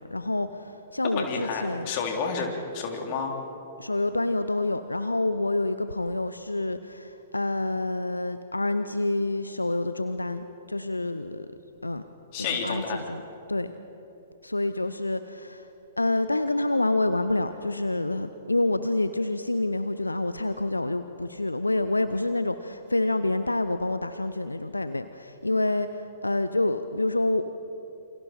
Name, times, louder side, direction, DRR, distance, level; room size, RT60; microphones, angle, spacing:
voice 1, 0.0-1.9 3.8-11.5 11.8-12.0 12.4-13.2 13.5-13.7 14.4-15.7 16.0-27.5, left 2 dB, 80° left, 11 dB, 0.7 m, -27 dB
voice 2, 1.0-3.4 12.3-13.0, left 5 dB, 40° left, 2 dB, 3.5 m, -30 dB
28.5 x 27.0 x 4.5 m, 2.9 s
figure-of-eight pair, 110°, 0 cm